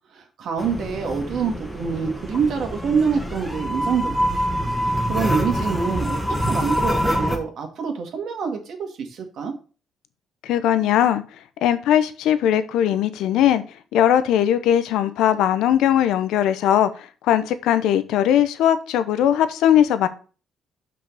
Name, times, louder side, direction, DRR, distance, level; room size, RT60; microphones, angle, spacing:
voice 1, 0.0-4.3 4.8-9.5, right 6 dB, 70° right, 2.1 m, -26 dB
sound 1, 0.6-7.4, equal, ahead, 1.7 m, -25 dB
voice 2, 10.4-11.2 11.6-13.6 13.9-20.1, left 10 dB, 90° left, 0.7 m, -19 dB
6.1 x 5.2 x 5.9 m
cardioid pair, 90°, 0 cm